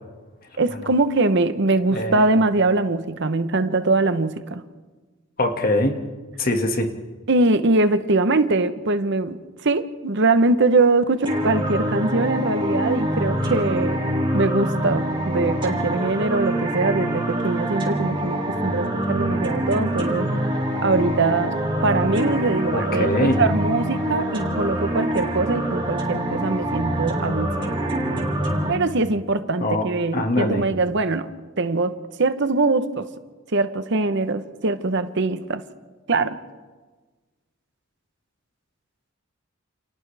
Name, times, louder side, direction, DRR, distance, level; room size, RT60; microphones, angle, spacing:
voice 1, 0.6-4.6 7.3-14.0 14.3-20.3 20.8-27.8 28.7-33.1 33.5-35.6 36.1-36.4, right 3 dB, 60° right, 1.0 m, -22 dB
voice 2, 1.9-2.2 5.4-6.1 6.4-6.9 22.7-23.4 29.6-29.9 30.1-30.6, left 1 dB, 45° left, 2.0 m, -22 dB
sound 1, 11.3-28.7, right 1 dB, 25° right, 3.3 m, -25 dB
29.0 x 29.0 x 3.5 m
head